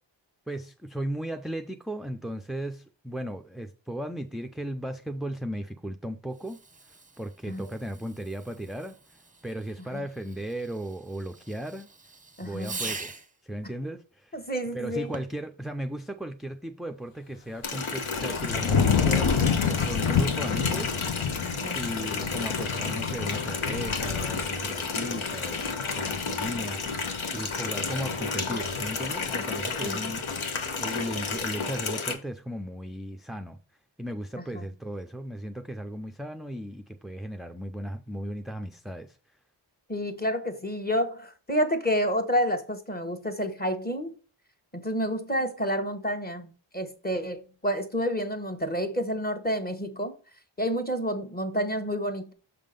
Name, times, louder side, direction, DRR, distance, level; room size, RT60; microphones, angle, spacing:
voice 1, 0.5-6.6 6.8-11.9 12.4-13.1 13.4-14.4 14.7-19.4 19.7-21.0 21.7-30.2 30.8-33.6 34.0-39.4, equal, ahead, 0.4 m, -36 dB
Fireworks, 6.3-13.4 15.0-15.5, right 3 dB, 15° right, 0.8 m, -43 dB
voice 2, 12.4-12.8 14.3-15.1 21.4-21.8 29.8-30.0 34.5-34.6 39.9-44.1 44.7-50.1 50.6-52.3, equal, 20° left, 1.2 m, -29 dB
Water tap faucet, 17.6-32.1, left 4 dB, 85° left, 1.1 m, -32 dB
sound 1, 17.6-31.8, left 6 dB, 65° left, 0.8 m, -31 dB
6.7 x 3.6 x 5.2 m
wide cardioid pair, 65°, 48 cm